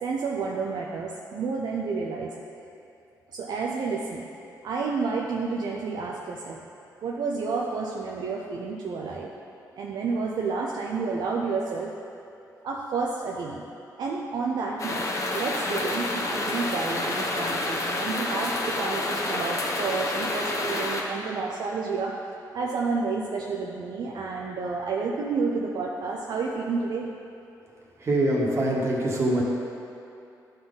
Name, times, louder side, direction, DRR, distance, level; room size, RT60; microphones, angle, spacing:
voice 1, 0.0-2.3 3.3-4.2 4.6-6.6 7.0-9.3 9.8-11.9 12.6-13.6 14.0-15.0 15.3-22.1 22.5-27.1, right 4 dB, 70° right, -2 dB, 0.6 m, -30 dB
sound 1, 14.8-21.0, left 2 dB, 45° left, 0.9 m, -29 dB
voice 2, 28.0-29.4, right 1 dB, 40° right, -4 dB, 1.5 m, -24 dB
11.0 x 4.0 x 3.9 m, 2.7 s
cardioid pair, 90°, 7 cm